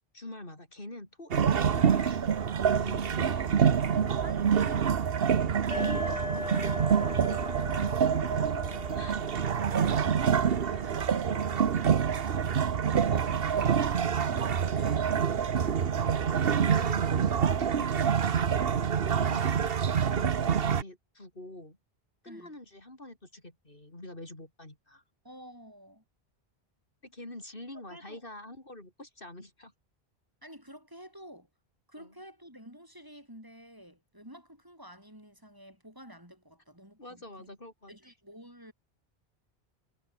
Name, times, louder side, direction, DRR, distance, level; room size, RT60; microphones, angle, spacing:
voice 1, 0.1-2.3 2.8-3.2 5.7-7.0 8.7-9.2 16.6-17.3 17.7-18.2 19.1-19.8 20.1-21.8 22.2-25.0 27.0-29.7 32.0-32.1 37.0-37.9, left 1 dB, 60° left, 5.2 m, -46 dB
sound 1, 1.3-20.8, right 7 dB, 65° right, 1.2 m, -26 dB
voice 2, 3.1-5.2 7.6-8.1 8.8-12.0 12.7-16.8 22.2-22.5 25.2-26.0 27.9-28.2 30.4-31.5 31.9-37.5 37.9-38.7, equal, 20° right, 7.2 m, -50 dB
sound 2, 5.7-13.2, left 1 dB, 30° left, 4.0 m, -40 dB
omnidirectional pair, 1.0 m